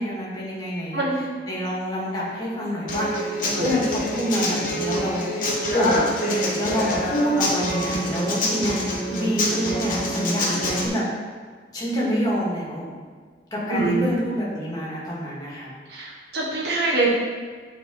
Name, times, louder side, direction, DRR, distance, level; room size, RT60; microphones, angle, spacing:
voice 1, 0.0-5.2 5.7-6.0 6.5-11.0 11.7-12.9 13.5-15.7, equal, 20° left, -7 dB, 2.0 m, -27 dB
voice 2, 0.9-1.3 3.4-3.8 6.2-6.4 9.2-9.3 13.7-14.1 15.9-17.1, right 2 dB, 65° right, -3 dB, 1.4 m, -25 dB
Human voice / Acoustic guitar, 2.9-10.9, left 1 dB, 50° left, 1.3 m, -26 dB
8.6 x 4.2 x 3.8 m, 1.6 s
head